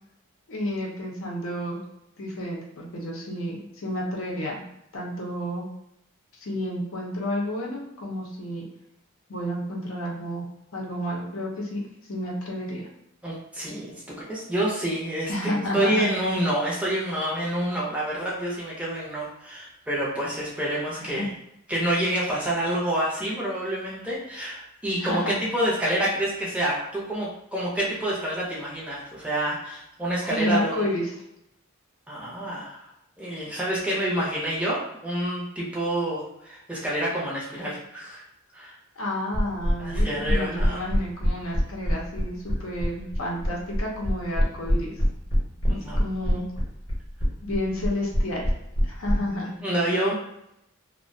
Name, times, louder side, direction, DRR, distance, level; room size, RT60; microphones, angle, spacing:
voice 1, 0.5-1.8 2.2-4.6 4.9-5.7 6.4-8.6 9.3-10.5 10.7-11.8 12.1-12.9 15.3-16.0 21.0-21.3 25.0-25.4 30.3-31.1 39.0-44.9 45.7-46.4 47.4-48.5 48.8-49.5, left 1 dB, 70° left, -2 dB, 0.6 m, -30 dB
voice 2, 13.2-21.3 21.7-30.8 32.1-32.9 33.2-38.2 38.5-38.8 39.8-40.8 45.6-46.0 49.3-50.1, right 1 dB, 5° right, -6 dB, 0.5 m, -28 dB
sound 1, 39.3-49.1, equal, 25° left, 0.8 m, -23 dB
2.3 x 2.1 x 2.5 m, 0.82 s
head